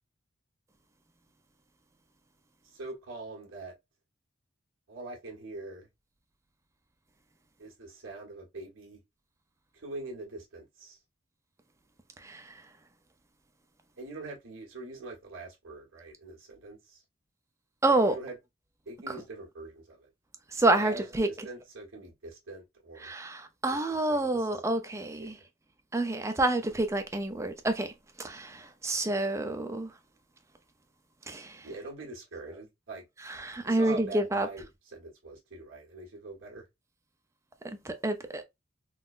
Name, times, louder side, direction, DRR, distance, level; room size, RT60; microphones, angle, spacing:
voice 1, 2.6-3.7 4.9-5.9 7.6-9.0 9.7-11.0 14.0-17.0 17.8-18.4 18.8-20.1 20.7-23.1 23.7-24.6 25.2-25.5 31.6-33.1 33.6-36.7, right 2 dB, 70° right, 1.3 m, -44 dB
voice 2, 17.8-18.2 20.5-21.3 23.0-25.3 25.9-27.9 28.2-29.9 31.3-31.6 33.4-34.5 37.9-38.4, right 2 dB, 15° right, 0.4 m, -28 dB
3.7 x 2.1 x 2.4 m
head